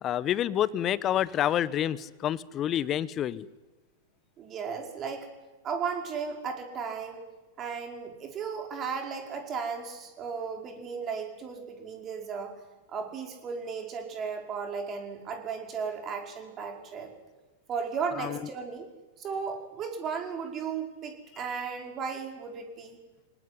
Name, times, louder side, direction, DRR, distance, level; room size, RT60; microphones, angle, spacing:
voice 1, 0.0-3.5 18.2-18.4, left 11 dB, 30° left, 19 dB, 1.1 m, -28 dB
voice 2, 4.4-5.3 5.6-7.2 7.6-12.6 12.9-17.1 17.7-18.9 19.2-23.0, right 6 dB, 30° right, 3 dB, 5.1 m, -35 dB
24.5 x 19.0 x 10.0 m, 1.2 s
figure-of-eight pair, 100°, 0 cm